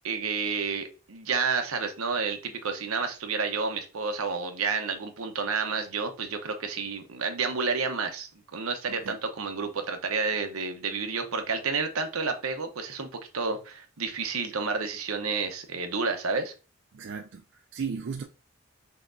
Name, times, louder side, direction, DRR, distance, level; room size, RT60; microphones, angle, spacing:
voice 1, 0.0-16.5, right 4 dB, 85° right, 0.8 m, -30 dB
voice 2, 16.9-18.2, right 6 dB, 55° right, 0.4 m, -35 dB
5.6 x 2.9 x 2.6 m
head